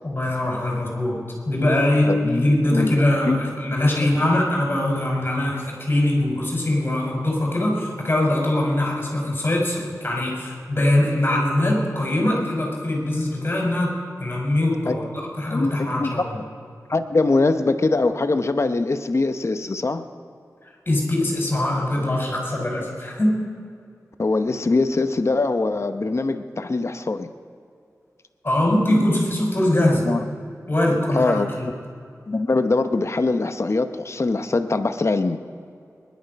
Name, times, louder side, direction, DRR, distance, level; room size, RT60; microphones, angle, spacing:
voice 1, 0.0-1.2 1.5-13.9 14.2-16.4 20.9-23.3 28.4-30.0 30.7-31.7, left 1 dB, 35° left, -1 dB, 5.3 m, -22 dB
voice 2, 2.0-2.4 2.7-2.9 3.3-3.5 4.0-4.1 14.9-15.0 15.5-16.2 16.9-20.0 24.2-27.3 30.1-30.2 31.1-31.5 32.3-35.4, left 3 dB, 50° left, 9 dB, 0.9 m, -22 dB
22.0 x 11.5 x 5.3 m, 2.4 s
wide cardioid pair, 75°, 6 cm